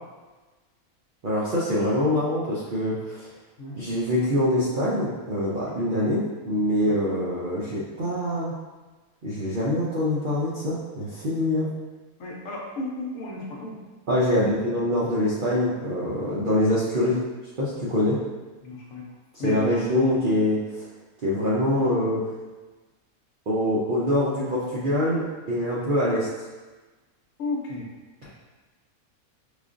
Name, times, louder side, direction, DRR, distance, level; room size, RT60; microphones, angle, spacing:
voice 1, 1.2-3.3 3.7-8.5 9.2-11.7 14.1-17.2 17.6-18.2 19.3-20.9 21.2-22.2 23.5-26.5, left 1 dB, 60° right, -9 dB, 0.5 m, -24 dB
voice 2, 12.2-13.8 18.6-19.1 19.4-19.7 27.4-27.9, left 2 dB, 70° left, -3 dB, 1.0 m, -33 dB
4.9 x 2.4 x 2.4 m, 1.3 s
omnidirectional pair, 1.5 m